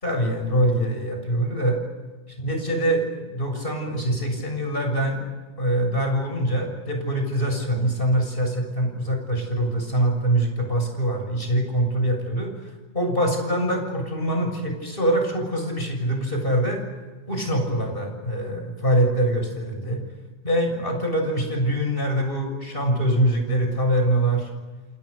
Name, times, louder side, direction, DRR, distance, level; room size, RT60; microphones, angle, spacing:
voice 1, 0.0-1.8 2.4-5.2 5.6-12.7 12.9-16.8 17.3-20.0 20.4-24.5, right 1 dB, 50° left, 3 dB, 7.3 m, -24 dB
28.5 x 27.5 x 6.9 m, 1.2 s
omnidirectional pair, 1.2 m